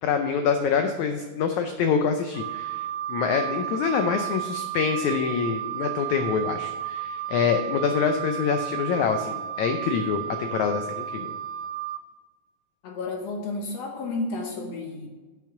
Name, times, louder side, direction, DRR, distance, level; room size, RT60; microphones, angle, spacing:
voice 1, 0.0-11.3, left 6 dB, 90° left, 6 dB, 1.6 m, -26 dB
Wind instrument woodwind instrument, 2.3-12.0, right 11 dB, 80° right, 2.7 m, -33 dB
voice 2, 12.8-15.1, left 3 dB, 70° left, 2 dB, 1.5 m, -31 dB
8.6 x 6.3 x 5.8 m, 1.3 s
omnidirectional pair, 4.1 m